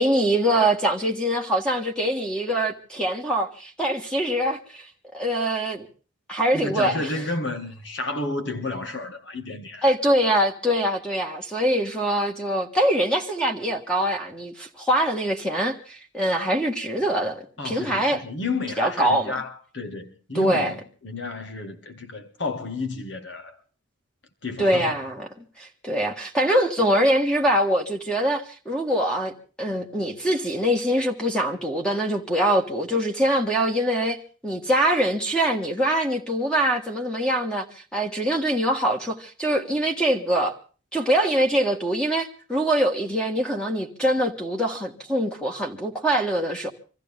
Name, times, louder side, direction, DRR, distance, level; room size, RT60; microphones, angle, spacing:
voice 1, 0.0-4.9 5.1-5.9 6.3-7.1 9.8-18.2 18.8-19.4 20.3-20.7 24.6-34.2 34.4-37.7 37.9-40.6 40.9-46.7, right 1 dB, 5° left, 1.6 m, -23 dB
voice 2, 6.5-9.8 17.6-23.6 24.4-25.0, left 2 dB, 60° left, 1.9 m, -31 dB
25.5 x 14.5 x 3.7 m
head